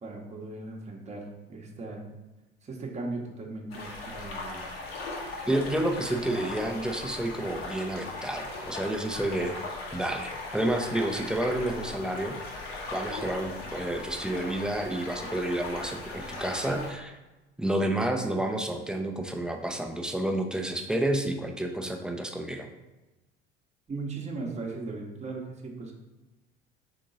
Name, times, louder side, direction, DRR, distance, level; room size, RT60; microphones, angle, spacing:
voice 1, 0.0-2.0 2.6-4.6 23.9-25.9, right 3 dB, 20° right, 0 dB, 0.9 m, -38 dB
sound 1, 3.7-16.9, left 3 dB, 75° left, 1.0 m, -38 dB
voice 2, 5.5-9.6 9.9-12.4 12.9-17.2 17.6-22.7, right 1 dB, 5° right, 4 dB, 0.5 m, -30 dB
3.7 x 3.7 x 3.9 m, 1.1 s
figure-of-eight pair, 60°, 31 cm